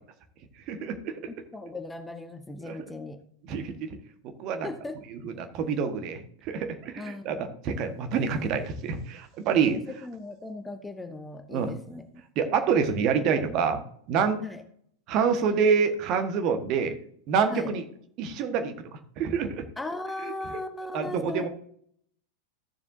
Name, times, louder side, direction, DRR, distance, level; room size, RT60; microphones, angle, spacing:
voice 1, 0.7-1.1 2.7-2.8 3.5-3.9 4.4-4.7 5.1-9.8 11.5-11.7 12.3-13.8 14.1-14.4 15.1-16.9 17.3-17.8 18.2-18.7 19.2-19.6 20.2-20.3 20.9-21.5, right 6 dB, 40° right, 7 dB, 1.4 m, -27 dB
voice 2, 1.5-3.2 4.6-5.0 7.0-7.6 9.4-12.1 14.4-14.6 17.5-17.7 19.8-21.5, left 2 dB, 10° left, 7 dB, 1.0 m, -38 dB
15.0 x 7.2 x 2.7 m, 0.63 s
figure-of-eight pair, 90°, 0 cm